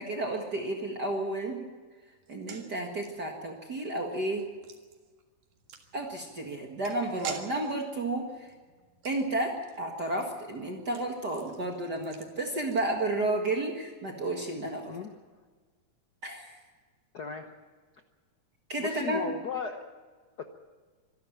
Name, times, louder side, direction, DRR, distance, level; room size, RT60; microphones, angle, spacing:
voice 1, 0.0-1.7 2.3-4.4 5.9-8.5 9.0-14.9 16.2-16.6 18.7-19.2, right 2 dB, 40° right, 2 dB, 2.1 m, -32 dB
sound 1, 2.2-13.5 13.7-13.8 14.1-14.3, right 7 dB, 90° right, 3.4 m, -48 dB
voice 2, 14.9-15.2 17.1-17.5 18.8-19.9 20.4-20.5, left 5 dB, 90° left, 6 dB, 0.8 m, -36 dB
25.5 x 11.5 x 8.9 m, 1.4 s
omnidirectional pair, 3.4 m